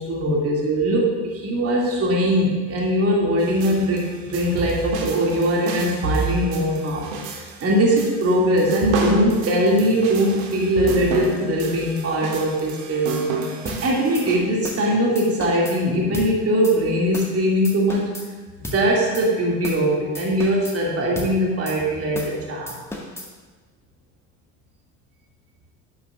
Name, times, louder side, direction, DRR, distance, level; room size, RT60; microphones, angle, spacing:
voice 1, 0.0-7.1 7.4-13.3 13.8-18.1 18.7-22.7, equal, 35° right, -3 dB, 2.6 m, -21 dB
sound 1, 3.4-14.4, right 4 dB, 60° right, 1.5 m, -29 dB
sound 2, 13.7-13.8 14.1-14.3 14.6-14.9 15.2-15.8 16.1-16.3 16.6-16.8 17.1-17.4 17.6-18.3 18.6-18.8 19.1-19.3 19.6-19.9 20.1-20.8 21.2-21.3 21.7-21.8 22.1-22.4 22.7-23.3, left 1 dB, 5° left, 1.7 m, -34 dB
12.0 x 11.5 x 2.5 m, 1.3 s
figure-of-eight pair, 60°, 42 cm